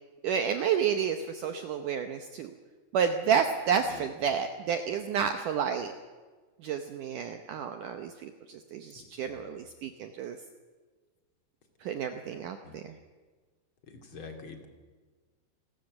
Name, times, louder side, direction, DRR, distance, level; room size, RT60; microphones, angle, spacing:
voice 1, 0.2-2.5 2.9-5.9 6.6-10.4 11.8-12.9, right 7 dB, 75° right, 7 dB, 1.9 m, -30 dB
voice 2, 3.8-4.1 8.9-9.6 12.6-12.8 13.9-14.7, left 4 dB, 35° left, 4 dB, 2.6 m, -47 dB
29.5 x 13.0 x 7.8 m, 1.4 s
omnidirectional pair, 4.8 m